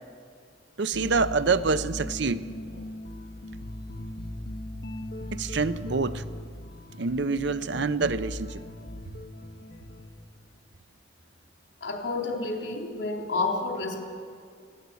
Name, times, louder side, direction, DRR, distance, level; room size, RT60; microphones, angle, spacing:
voice 1, 0.8-2.5 5.3-6.2 7.0-8.6, right 4 dB, 65° right, 13 dB, 0.7 m, -26 dB
sound 1, 0.9-10.5, left 1 dB, 50° left, 1.1 m, -39 dB
voice 2, 11.8-14.0, left 3 dB, 70° left, 2 dB, 3.5 m, -30 dB
21.0 x 16.0 x 8.3 m, 2.2 s
head